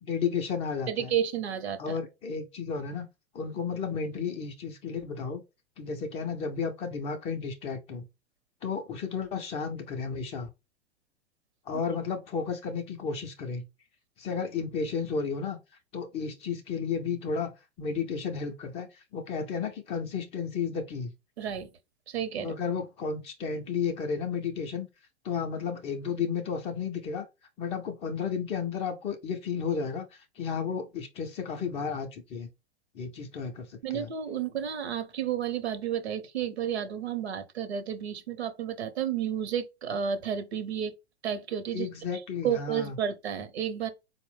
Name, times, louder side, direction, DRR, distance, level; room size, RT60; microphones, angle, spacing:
voice 1, 0.0-1.1 1.8-3.1 3.3-5.4 5.8-8.1 8.6-10.5 11.7-13.7 14.2-15.6 15.9-17.5 17.8-21.1 22.4-24.9 25.2-27.2 27.6-30.1 30.4-32.5 33.0-34.1 41.7-43.0, left 6 dB, 20° left, 0.3 m, -33 dB
voice 2, 0.9-2.0 21.4-21.7 22.1-22.5 33.8-40.9 41.2-41.9 42.4-43.9, right 9 dB, 75° right, 0.7 m, -31 dB
4.3 x 2.0 x 3.1 m
figure-of-eight pair, 95°, 33 cm